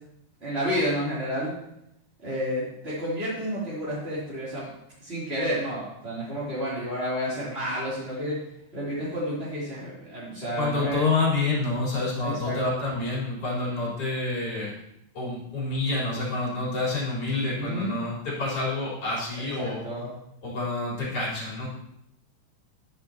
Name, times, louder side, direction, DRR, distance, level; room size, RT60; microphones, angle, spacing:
voice 1, 0.4-1.5 2.2-4.7 5.0-8.4 8.7-11.0 12.2-12.6 17.6-17.9 19.4-20.1, equal, 15° right, -11 dB, 2.9 m, -30 dB
voice 2, 10.6-14.7 15.1-19.9 20.4-21.7, left 3 dB, 35° left, -7 dB, 4.9 m, -28 dB
12.5 x 10.5 x 2.9 m, 0.80 s
omnidirectional pair, 4.8 m